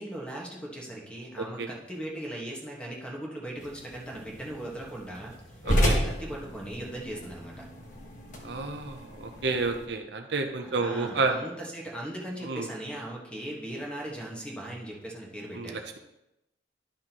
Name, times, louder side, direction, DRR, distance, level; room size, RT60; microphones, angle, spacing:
voice 1, 0.0-5.3 5.7-7.6 10.6-15.8, right 1 dB, 5° left, -2 dB, 1.5 m, -38 dB
sound 1, 3.6-9.9, equal, 45° left, 1.5 m, -32 dB
voice 2, 5.7-6.0 8.4-11.4 12.4-12.7 15.5-16.0, right 3 dB, 65° right, 5 dB, 0.7 m, -30 dB
11.0 x 6.1 x 3.0 m, 0.88 s
head